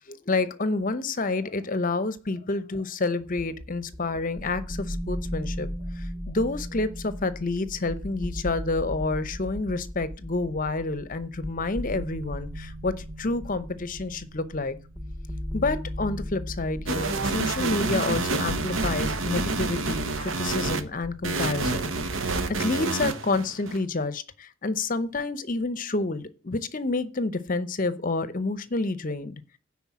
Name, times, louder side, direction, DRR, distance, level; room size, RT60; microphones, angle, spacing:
voice 1, 0.1-5.7 5.9-14.8 15.5-29.4, left 3 dB, 40° left, 0.7 m, -29 dB
sound 1, 3.2-22.6, equal, 5° right, 0.7 m, -37 dB
sound 2, 16.9-20.8 21.2-23.8, right 3 dB, 60° right, 1.0 m, -28 dB
9.9 x 4.3 x 7.2 m
head